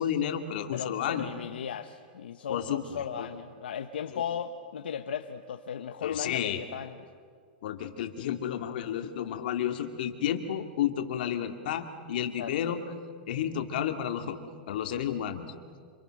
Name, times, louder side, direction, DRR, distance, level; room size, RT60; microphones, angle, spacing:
voice 1, 0.0-1.3 2.5-3.3 6.0-6.6 7.6-12.8 13.3-14.4 14.7-15.5, left 9 dB, 65° left, 6 dB, 2.4 m, -31 dB
voice 2, 0.7-7.0 12.4-12.7, left 8 dB, 85° left, 6 dB, 1.1 m, -36 dB
27.5 x 27.0 x 6.5 m, 2.1 s
hypercardioid pair, 135°, 5 cm